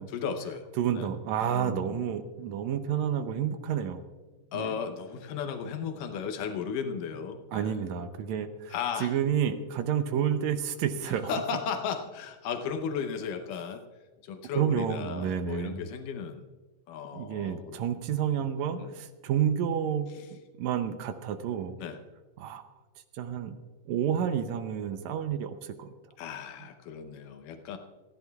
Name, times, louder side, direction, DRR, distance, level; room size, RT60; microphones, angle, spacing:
voice 1, 0.0-0.6 1.0-1.1 1.4-2.0 4.5-7.8 8.7-9.1 11.2-13.8 14.2-16.4 16.9-18.0 18.7-18.9 21.8-22.0 26.2-27.8, left 6 dB, 80° left, 6 dB, 2.4 m, -35 dB
voice 2, 0.8-4.0 4.5-4.7 7.5-11.3 14.6-15.9 17.1-20.1 20.6-21.8 22.4-22.6 23.1-23.6 23.9-25.9, right 9 dB, 75° right, 9 dB, 1.8 m, -30 dB
28.0 x 11.0 x 2.3 m, 1.3 s
omnidirectional pair, 3.7 m